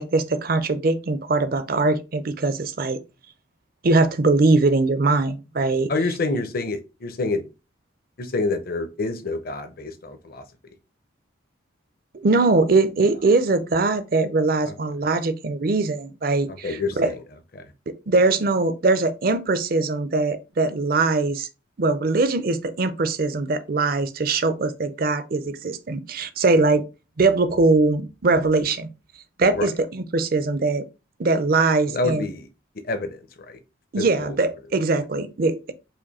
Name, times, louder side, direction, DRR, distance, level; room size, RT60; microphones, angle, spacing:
voice 1, 0.0-3.0 3.8-5.9 12.1-17.1 17.9-21.5 21.8-26.8 27.2-28.9 29.4-30.9 31.2-32.2 33.9-35.7, right 3 dB, 45° right, 0.5 m, -21 dB
voice 2, 5.9-7.4 8.2-10.4 14.6-14.7 16.5-17.2 17.5-17.7 29.5-29.7 31.9-32.5 32.7-33.6 34.0-34.4, left 3 dB, 45° left, 0.7 m, -28 dB
5.0 x 2.6 x 4.1 m
head